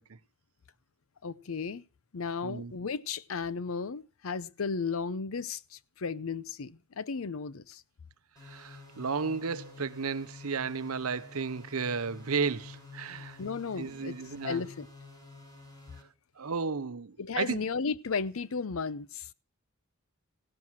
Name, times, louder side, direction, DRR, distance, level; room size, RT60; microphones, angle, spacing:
voice 1, 1.2-1.8 2.1-7.8 13.4-14.1 14.4-14.9 17.2-19.3, left 5 dB, 70° left, 0.6 m, -34 dB
sound 1, 8.4-16.0, left 4 dB, 20° left, 6.4 m, -50 dB
voice 2, 8.4-13.4 13.8-14.6 16.4-17.6, right 5 dB, 80° right, 0.8 m, -33 dB
16.0 x 7.4 x 6.1 m
head